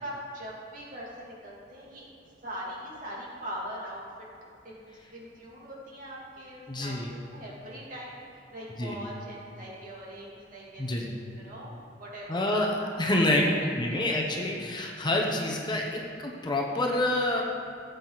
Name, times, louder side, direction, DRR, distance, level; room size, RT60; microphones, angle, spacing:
voice 1, 0.0-2.0 2.4-4.0 4.6-4.8 5.1-7.0 7.3-8.2 8.5-11.0 11.4-11.7 12.0-12.4 12.8-12.9 13.3-13.4 13.9-14.0, equal, 45° right, -5 dB, 2.9 m, -41 dB
voice 2, 6.7-7.1 8.8-9.0 10.8-11.1 12.3-13.4 13.7-17.4, left 1 dB, 25° left, 0 dB, 1.0 m, -27 dB
16.5 x 8.1 x 4.1 m, 2.5 s
head